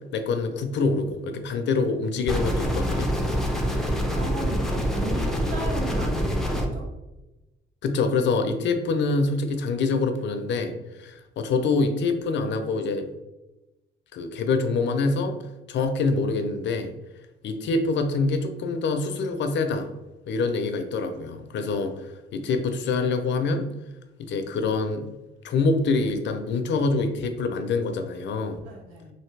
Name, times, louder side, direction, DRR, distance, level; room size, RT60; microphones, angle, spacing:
voice 1, 0.1-3.1 7.8-13.1 14.1-15.4 15.7-16.9 17.4-19.9 20.3-23.7 24.2-25.1 25.4-28.6, left 3 dB, 65° left, 7 dB, 0.5 m, -25 dB
sound 1, 2.3-6.7, equal, ahead, 0.6 m, -25 dB
voice 2, 3.7-6.9 28.6-29.1, right 2 dB, 80° right, -2 dB, 1.2 m, -36 dB
3.2 x 2.6 x 3.2 m, 1.0 s
cardioid pair, 90°, 20 cm